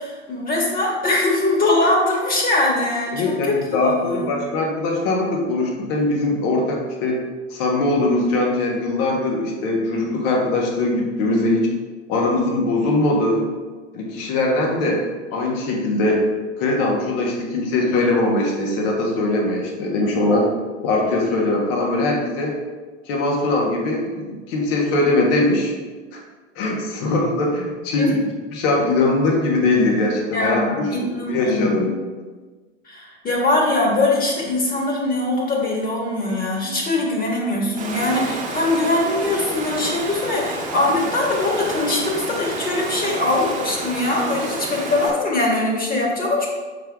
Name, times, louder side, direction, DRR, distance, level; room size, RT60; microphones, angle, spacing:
voice 1, 0.0-4.3 28.0-28.2 30.3-31.7 32.9-46.5, left 2 dB, 25° left, -2 dB, 1.8 m, -22 dB
voice 2, 3.1-7.2 7.5-11.7 12.1-13.4 13.9-15.0 15.3-16.2 16.6-20.5 20.8-22.6 23.1-25.7 26.1-26.2 26.5-28.1 28.5-30.9 31.3-31.9, left 2 dB, 55° left, 0 dB, 1.5 m, -21 dB
Water, 37.8-45.1, right 3 dB, 20° right, 1.3 m, -30 dB
5.9 x 4.5 x 3.6 m, 1.3 s
hypercardioid pair, 90°, 35 cm